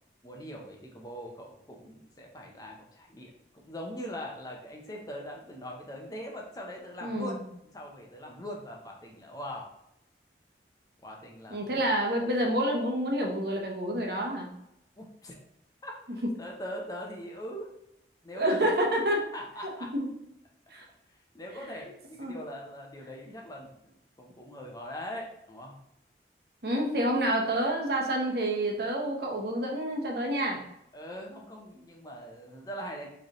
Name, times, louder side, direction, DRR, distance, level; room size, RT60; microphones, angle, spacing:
voice 1, 0.2-7.4 7.7-9.7 11.0-11.7 12.2-12.3 15.0-15.4 15.8-16.0 16.4-17.7 18.2-18.7 19.3-19.9 21.3-23.7 24.2-25.7 30.9-33.1, equal, 20° left, 0 dB, 0.7 m, -41 dB
voice 2, 7.0-7.4 11.5-14.5 18.3-19.2 19.9-20.1 20.7-20.8 22.2-22.3 26.6-30.6, right 1 dB, 60° right, 0 dB, 1.0 m, -28 dB
5.0 x 3.3 x 3.0 m, 0.81 s
head